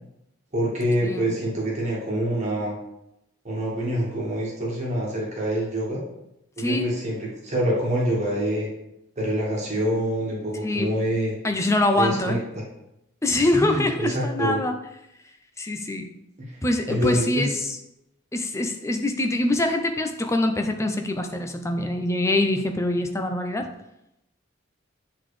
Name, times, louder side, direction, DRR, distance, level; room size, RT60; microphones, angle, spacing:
voice 1, 0.5-2.7 3.4-6.0 6.6-8.7 9.2-11.3 11.9-12.4 13.5-14.6 16.4-16.6 16.9-17.5, equal, 35° right, -4 dB, 1.6 m, -26 dB
voice 2, 6.6-6.9 10.6-10.9 11.4-12.4 13.2-14.8 15.6-16.1 16.6-17.8 18.3-23.7, left 1 dB, 15° left, 5 dB, 0.5 m, -24 dB
8.7 x 3.9 x 3.2 m, 0.86 s
head